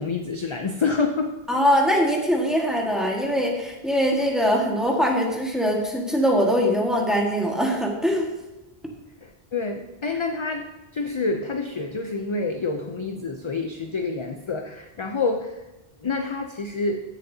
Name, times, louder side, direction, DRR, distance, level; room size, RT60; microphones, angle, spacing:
voice 1, 0.0-1.3 9.2-15.5 16.0-17.0, left 4 dB, 35° left, 5 dB, 0.5 m, -27 dB
voice 2, 1.5-8.3, equal, ahead, -1 dB, 1.5 m, -22 dB
14.5 x 7.1 x 2.8 m, 1.0 s
omnidirectional pair, 1.0 m